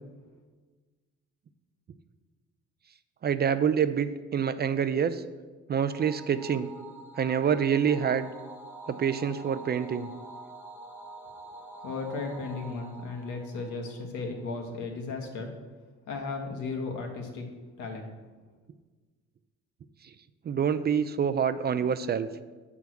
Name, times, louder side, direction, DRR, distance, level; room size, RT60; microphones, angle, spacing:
voice 1, 3.2-5.2 5.7-6.7 7.2-8.3 8.9-10.1 20.5-22.3, right 7 dB, 35° right, 11 dB, 0.4 m, -26 dB
sound 1, 5.9-14.5, right 2 dB, 5° right, 0.9 m, -46 dB
voice 2, 11.8-15.5 16.1-17.5 17.8-18.1, left 3 dB, 85° left, 2 dB, 1.4 m, -35 dB
7.6 x 3.6 x 6.0 m, 1.3 s
cardioid pair, 80°, 29 cm